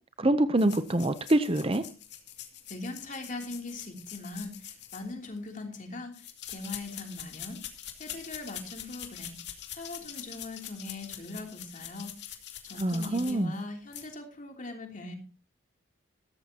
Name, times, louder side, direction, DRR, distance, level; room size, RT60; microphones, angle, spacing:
voice 1, 0.2-1.8 12.8-13.5, right 1 dB, 25° right, 0.7 m, -25 dB
sound 1, 0.6-5.5 6.1-13.6 13.9-14.1, left 10 dB, 55° left, 2.6 m, -44 dB
voice 2, 2.7-7.6 8.0-9.4 9.8-12.2 12.6-15.2, left 2 dB, 40° left, 3.1 m, -40 dB
16.0 x 14.0 x 2.9 m
head